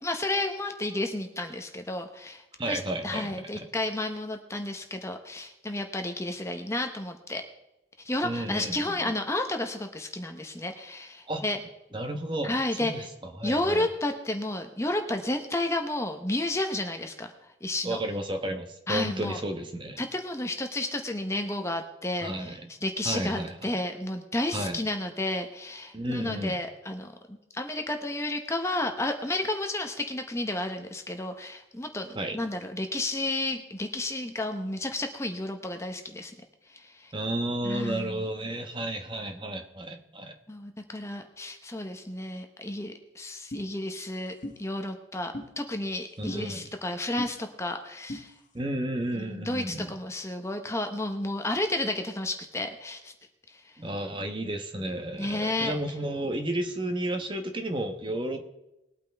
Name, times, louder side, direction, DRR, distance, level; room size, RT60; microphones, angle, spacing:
voice 1, 0.0-7.4 8.0-11.6 12.4-13.1 13.4-17.3 17.6-18.0 18.9-19.4 20.0-36.3 36.7-37.1 37.6-38.2 40.5-44.3 44.6-48.3 49.2-53.1 55.2-55.7, left 1 dB, 15° left, 5 dB, 0.9 m, -32 dB
voice 2, 2.6-3.7 8.2-9.1 11.3-11.4 11.9-13.9 17.8-20.0 22.2-22.7 23.0-23.8 24.5-24.8 25.9-26.6 32.1-32.4 37.1-40.3 46.2-46.7 48.5-49.9 53.8-58.4, right 1 dB, 25° right, 5 dB, 1.0 m, -32 dB
sound 1, 43.5-43.7 44.4-44.6 45.3-45.5 46.3-46.4 47.2-47.3 48.1-48.2, left 1 dB, 40° left, 1.5 m, -36 dB
21.0 x 8.8 x 3.5 m, 0.91 s
head